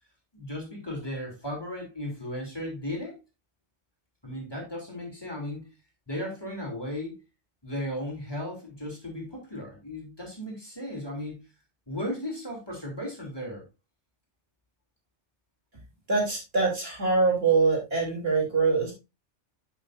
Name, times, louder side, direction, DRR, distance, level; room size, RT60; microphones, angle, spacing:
voice 1, 0.3-3.2 4.2-5.7 6.1-7.2 7.6-11.4 11.9-13.6, left 1 dB, 20° left, -2 dB, 3.2 m, -35 dB
voice 2, 16.1-18.9, right 4 dB, 55° right, -1 dB, 3.3 m, -24 dB
11.5 x 5.8 x 2.6 m, 0.25 s
omnidirectional pair, 1.2 m